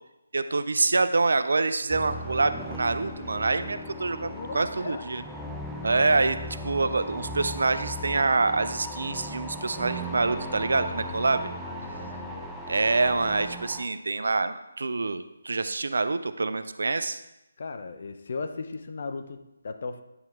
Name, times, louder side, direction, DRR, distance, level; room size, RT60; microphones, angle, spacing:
voice 1, 0.3-5.2 5.8-6.4 6.6-11.5 12.7-17.2, right 3 dB, 70° right, 12 dB, 0.5 m, -26 dB
sound 1, 1.9-13.8, equal, ahead, 0.6 m, -37 dB
voice 2, 4.2-5.0 10.5-12.5 17.6-20.0, left 4 dB, 55° left, 9 dB, 0.6 m, -38 dB
9.7 x 4.4 x 3.6 m, 0.89 s
figure-of-eight pair, 150°, 0 cm